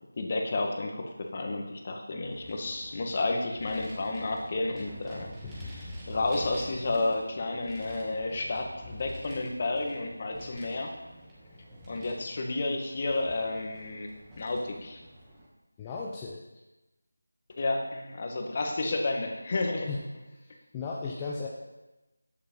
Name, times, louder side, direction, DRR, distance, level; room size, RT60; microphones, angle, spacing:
voice 1, 0.1-5.3 6.1-10.9 11.9-15.0 17.6-19.9, left 2 dB, 35° left, 2 dB, 1.9 m, -31 dB
Vehicle, 2.2-15.5, equal, 10° right, 2.0 m, -47 dB
voice 2, 15.8-16.4 19.9-20.0 20.3-21.5, left 4 dB, 15° left, -3 dB, 0.9 m, -36 dB
12.0 x 9.8 x 5.5 m, 1.1 s
figure-of-eight pair, 170°, 0 cm